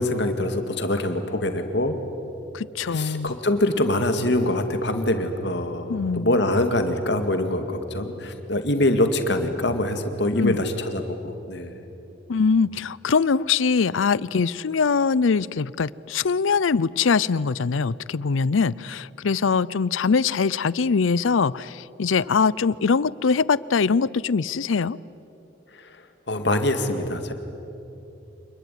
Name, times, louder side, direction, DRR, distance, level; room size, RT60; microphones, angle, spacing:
voice 1, 0.0-1.9 2.9-11.8 26.3-27.3, left 1 dB, 60° left, 2.2 m, -24 dB
voice 2, 2.5-3.3 5.9-6.4 10.4-10.6 12.3-25.0, left 5 dB, 90° left, 0.5 m, -22 dB
27.0 x 21.5 x 9.3 m
head